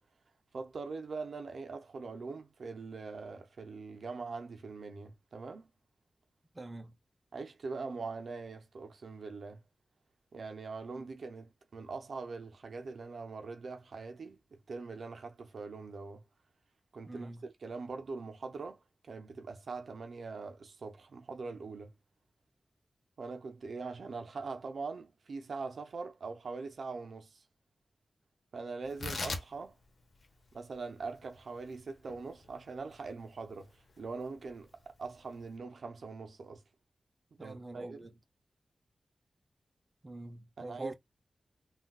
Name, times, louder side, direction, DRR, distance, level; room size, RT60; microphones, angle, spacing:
voice 1, 0.5-5.7 7.3-9.6 10.3-14.4 14.7-16.2 16.9-18.8 19.1-21.9 23.2-27.4 28.5-29.8 30.5-34.7 35.0-36.6 37.4-38.1 40.6-40.9, right 4 dB, 75° right, 0.6 m, -42 dB
voice 2, 6.5-7.0 10.9-11.1 17.1-17.5 37.4-38.1 40.0-40.9, right 2 dB, 30° right, 0.6 m, -44 dB
Tearing, 28.8-35.6, left 3 dB, 60° left, 0.8 m, -45 dB
3.6 x 2.4 x 2.2 m
wide cardioid pair, 75°, 0 cm